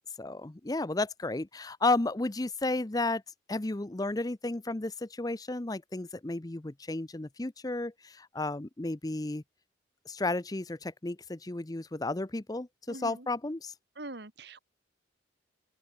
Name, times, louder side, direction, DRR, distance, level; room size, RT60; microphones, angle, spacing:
voice 1, 0.2-3.2 3.5-9.4 10.1-13.7, left 2 dB, 20° left, 0.7 m, -33 dB
voice 2, 12.9-13.3 14.0-14.6, right 2 dB, 60° right, 2.1 m, -43 dB
open air
head